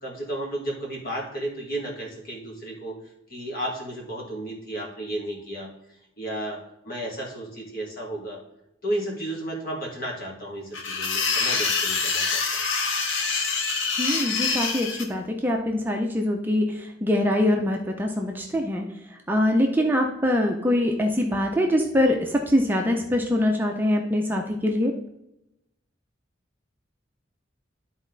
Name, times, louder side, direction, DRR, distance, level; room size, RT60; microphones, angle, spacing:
voice 1, 0.0-3.0 3.3-5.7 6.2-8.4 8.8-12.7, right 1 dB, 50° left, -2 dB, 2.2 m, -33 dB
sound 1, 10.7-15.0, left 4 dB, 85° left, 1.1 m, -25 dB
voice 2, 14.0-16.6 17.0-18.8 19.3-24.9, left 1 dB, 10° right, 1 dB, 0.6 m, -23 dB
12.0 x 4.1 x 4.0 m, 0.86 s
head